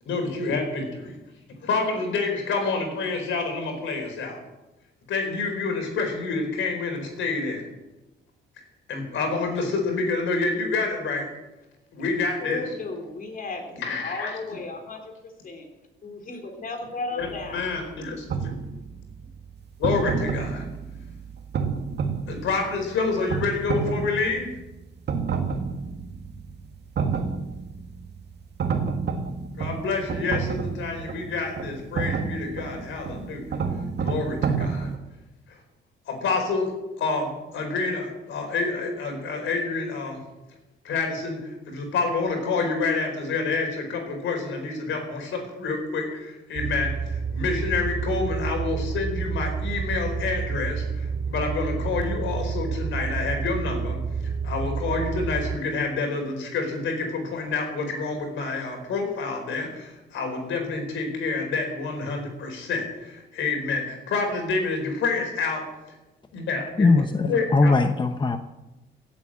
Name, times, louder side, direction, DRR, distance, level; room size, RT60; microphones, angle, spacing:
voice 1, 0.1-1.2 1.6-4.4 5.1-7.6 8.9-11.3 11.9-12.6 13.8-14.4 17.2-18.5 19.8-20.6 22.3-24.5 29.6-33.4 34.0-34.9 36.1-36.7 37.0-40.2 40.8-54.0 54.4-65.6 66.3-66.9 67.3-67.7, left 4 dB, 75° left, 4 dB, 4.6 m, -28 dB
voice 2, 12.4-15.1 15.4-15.7 16.0-17.7, left 2 dB, 45° left, 3 dB, 3.8 m, -35 dB
sound 1, 17.2-35.0, right 5 dB, 60° right, 2.0 m, -30 dB
sound 2, 46.6-55.6, right 5 dB, 35° right, 0.5 m, -29 dB
voice 3, 66.8-68.4, left 3 dB, 25° left, 7 dB, 0.9 m, -20 dB
17.0 x 8.6 x 7.6 m, 1.0 s
cardioid pair, 90°, 20 cm